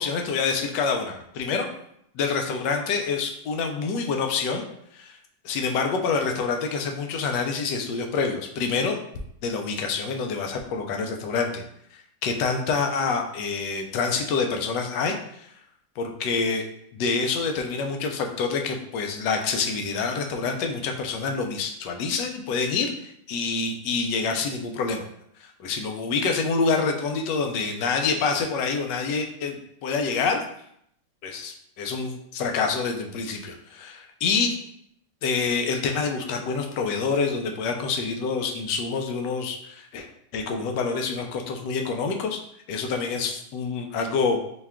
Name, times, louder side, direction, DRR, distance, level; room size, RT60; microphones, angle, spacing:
voice 1, 0.0-1.7 2.1-4.6 4.9-5.2 5.4-9.0 9.4-11.6 12.2-15.5 16.0-16.6 16.9-25.1 25.4-30.4 31.2-34.5 35.2-40.1 40.3-42.4 42.7-44.4, left 4 dB, 85° left, 3 dB, 1.2 m, -27 dB
4.5 x 2.3 x 3.5 m, 0.72 s
omnidirectional pair, 1.8 m